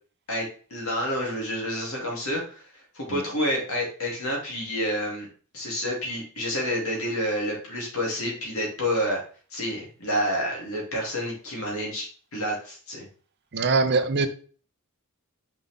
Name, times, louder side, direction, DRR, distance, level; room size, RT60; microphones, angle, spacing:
voice 1, 0.3-2.7 2.9-5.3 5.5-9.2 9.5-13.0, equal, 70° left, 3.0 m, -29 dB
voice 2, 13.5-14.3, right 4 dB, 50° right, 0.7 m, -22 dB
5.9 x 5.4 x 3.6 m
head